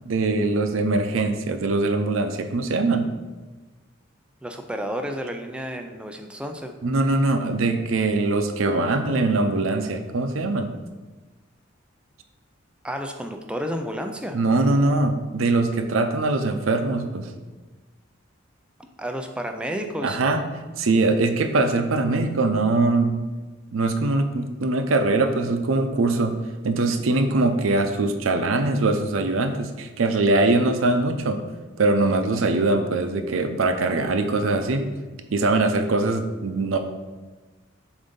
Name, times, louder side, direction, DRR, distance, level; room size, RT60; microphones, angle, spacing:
voice 1, 0.0-3.1 6.8-10.7 14.3-17.3 20.0-20.4 20.8-23.2 23.7-26.3 26.6-31.4 31.8-34.9 35.3-36.8, right 2 dB, 85° right, 7 dB, 0.6 m, -22 dB
voice 2, 4.4-6.7 12.8-14.4 19.0-20.2, equal, 5° right, 4 dB, 0.3 m, -31 dB
7.1 x 2.6 x 5.3 m, 1.2 s
head